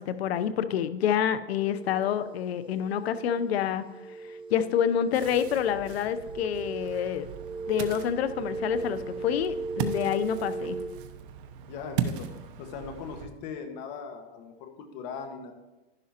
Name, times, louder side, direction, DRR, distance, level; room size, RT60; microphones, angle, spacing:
voice 1, 0.0-3.8 4.5-7.3 7.7-10.8, left 9 dB, 85° left, 12 dB, 0.8 m, -27 dB
sound 1, 1.5-10.9, right 3 dB, 15° right, 0.8 m, -38 dB
Ocean, 5.1-13.3, right 8 dB, 60° right, 0.9 m, -38 dB
voice 2, 11.7-15.5, left 6 dB, 45° left, 5 dB, 1.5 m, -40 dB
11.0 x 11.0 x 2.9 m, 1.1 s
supercardioid pair, 150°, 30 cm